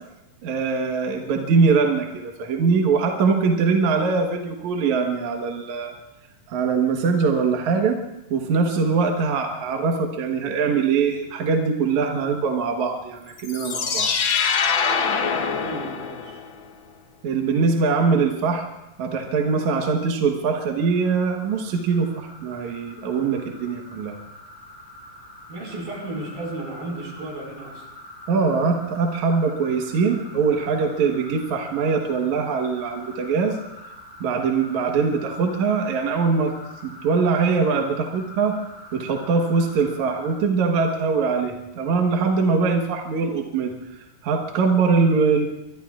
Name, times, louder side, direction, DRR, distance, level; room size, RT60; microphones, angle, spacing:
voice 1, 0.4-5.9 6.5-8.0 8.3-14.1 17.2-18.6 19.0-24.2 28.3-33.6 34.2-36.5 36.8-38.6 38.9-45.5, right 5 dB, 60° right, 2 dB, 2.4 m, -22 dB
sound 1, 13.4-16.5, left 6 dB, 80° left, 1.1 m, -24 dB
voice 2, 15.6-16.4 25.5-27.8, right 2 dB, 80° right, -1 dB, 7.0 m, -34 dB
sound 2, 20.5-40.4, left 1 dB, 40° left, 8.8 m, -44 dB
26.0 x 22.5 x 2.5 m, 0.93 s
omnidirectional pair, 4.1 m